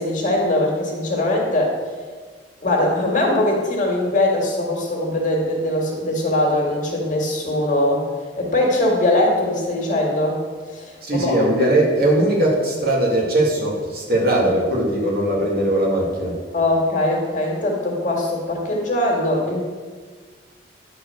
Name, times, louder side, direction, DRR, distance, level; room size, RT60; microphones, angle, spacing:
voice 1, 0.0-1.7 2.6-8.0 8.4-10.4 10.7-11.4 16.5-19.6, left 1 dB, 45° left, -1 dB, 2.0 m, -21 dB
voice 2, 11.0-16.4, right 1 dB, 55° right, -3 dB, 2.2 m, -19 dB
10.5 x 4.7 x 6.5 m, 1.5 s
head